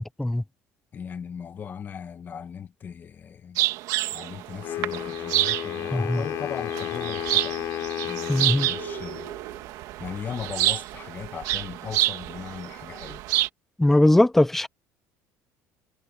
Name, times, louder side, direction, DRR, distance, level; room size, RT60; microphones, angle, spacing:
voice 1, 0.9-3.6 4.1-7.6 8.0-9.3 10.0-13.2, left 7 dB, 30° left, 1.6 m, -38 dB
sound 1, 3.6-13.5, right 16 dB, 70° right, 2.0 m, -29 dB
Wind instrument woodwind instrument, 4.6-9.6, left 13 dB, 60° left, 3.0 m, -33 dB
voice 2, 8.3-8.7 13.8-14.7, left 1 dB, 5° left, 0.4 m, -20 dB
cardioid pair, 140°, 6 cm